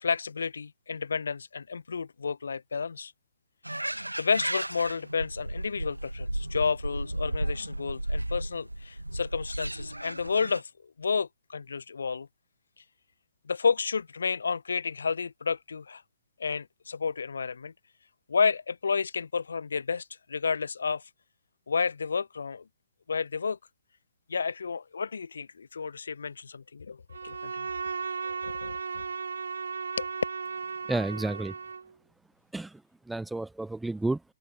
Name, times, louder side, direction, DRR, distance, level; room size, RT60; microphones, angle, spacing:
voice 1, 0.0-3.1 4.2-12.3 13.4-16.0 16.4-17.7 18.3-21.0 21.7-22.6 23.1-23.6 24.3-27.7 28.2-28.8 30.0-30.1, left 5 dB, 65° left, 0.7 m, -31 dB
sound 1, 3.6-10.6, right 1 dB, 85° right, 1.4 m, -34 dB
Bowed string instrument, 27.1-31.9, right 5 dB, 65° right, 0.7 m, -35 dB
voice 2, 30.9-31.5 32.5-32.8 33.1-34.2, right 2 dB, 5° right, 0.3 m, -31 dB
open air
figure-of-eight pair, 125°, 0 cm